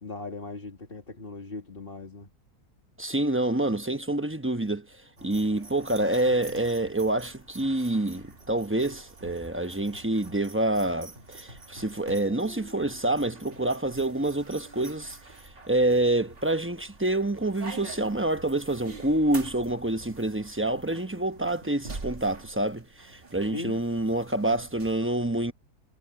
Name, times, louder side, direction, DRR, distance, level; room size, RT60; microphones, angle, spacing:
voice 1, 0.0-2.3 23.4-23.8, left 3 dB, 35° left, 2.3 m, -39 dB
voice 2, 3.0-4.9 5.2-15.2 15.7-25.5, right 1 dB, 10° right, 0.6 m, -27 dB
sound 1, 5.2-25.0, right 3 dB, 35° right, 2.2 m, -46 dB
omnidirectional pair, 1.8 m